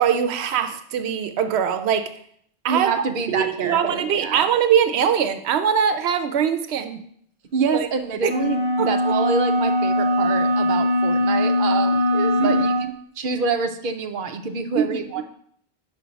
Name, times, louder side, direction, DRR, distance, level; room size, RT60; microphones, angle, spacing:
voice 1, 0.0-2.1 2.6-7.0 7.7-7.9 8.2-8.3 8.8-8.9 12.4-12.9 14.7-15.2, right 8 dB, 90° right, 9 dB, 0.9 m, -22 dB
voice 2, 2.7-4.5 7.5-12.7 13.2-15.3, right 5 dB, 60° right, 6 dB, 0.8 m, -26 dB
sound 1, 8.2-12.9, left 1 dB, 65° left, 1.8 m, -21 dB
5.8 x 5.4 x 5.1 m, 0.65 s
omnidirectional pair, 1.1 m